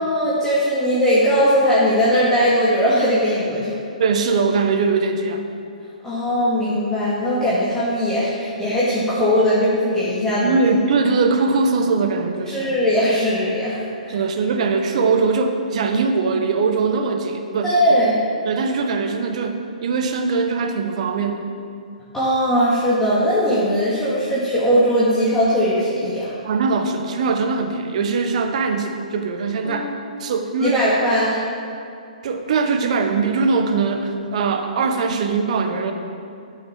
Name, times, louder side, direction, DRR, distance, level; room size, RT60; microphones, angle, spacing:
voice 1, 0.0-3.7 6.0-10.6 12.5-14.2 17.6-18.1 22.1-26.3 29.6-29.9 30.6-31.4, equal, 10° left, -10 dB, 2.2 m, -19 dB
voice 2, 4.0-5.4 10.4-12.7 14.1-17.7 18.4-21.4 26.4-29.9 30.2-30.8 32.2-35.9, right 4 dB, 55° right, 6 dB, 1.2 m, -21 dB
11.0 x 6.4 x 7.1 m, 2.5 s
figure-of-eight pair, 125°, 4 cm